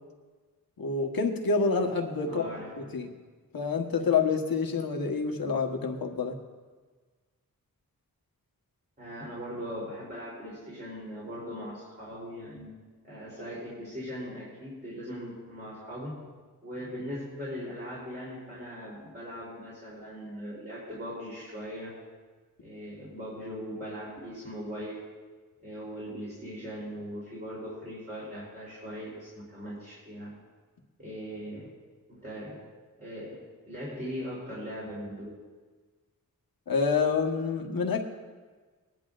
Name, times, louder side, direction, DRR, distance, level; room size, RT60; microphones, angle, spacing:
voice 1, 0.8-2.4 2.8-3.1 3.5-6.4 36.7-38.0, left 5 dB, 85° left, 3 dB, 1.3 m, -27 dB
voice 2, 2.2-2.9 9.0-12.7 13.0-16.2 16.6-22.0 22.6-25.0 25.6-30.4 31.0-31.7 32.1-32.6 33.0-35.4, equal, 30° right, -8 dB, 3.6 m, -40 dB
21.0 x 10.5 x 2.5 m, 1.4 s
wide cardioid pair, 160°, 34 cm